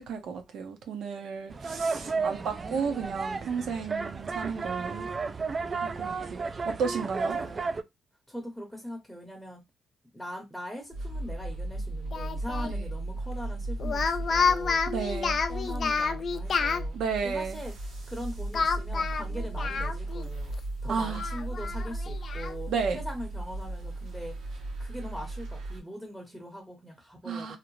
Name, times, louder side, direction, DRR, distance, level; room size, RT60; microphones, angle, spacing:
voice 1, 0.0-5.1 5.8-7.4 12.7-12.9 14.9-15.4 16.9-17.6 20.9-21.2 22.7-23.0 27.2-27.6, right 6 dB, 70° right, 0.6 m, -33 dB
sound 1, 1.5-7.8, right 4 dB, 35° right, 0.3 m, -33 dB
voice 2, 2.0-2.5 7.2-7.8 8.3-9.6 10.1-14.8 15.5-17.0 17.2-17.7 18.1-20.5 20.8-24.4 24.8-27.6, equal, ahead, 0.8 m, -41 dB
sound 2, 10.9-25.8, right 2 dB, 85° right, 1.1 m, -36 dB
Speech, 12.1-12.7 13.8-16.8 18.5-20.3 20.6-20.7 21.1-22.5, left 5 dB, 50° left, 0.4 m, -29 dB
2.6 x 2.1 x 3.0 m
cardioid pair, 90°, 0 cm